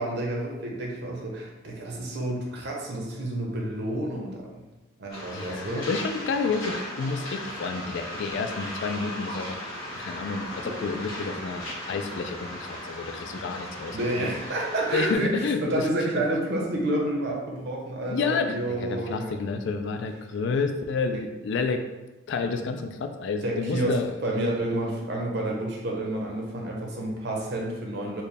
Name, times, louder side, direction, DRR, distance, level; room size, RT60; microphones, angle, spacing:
voice 1, 0.0-4.6 5.0-5.9 13.9-19.3 21.1-21.2 23.4-28.2, right 1 dB, 55° right, -1 dB, 0.8 m, -29 dB
Waves surf, 5.1-15.1, left 1 dB, 90° left, 1.5 m, -37 dB
voice 2, 5.3-9.6 9.9-14.3 14.9-15.9 18.1-21.8 22.3-24.1, left 4 dB, 60° left, 7 dB, 0.3 m, -30 dB
4.3 x 2.1 x 3.3 m, 1.1 s
head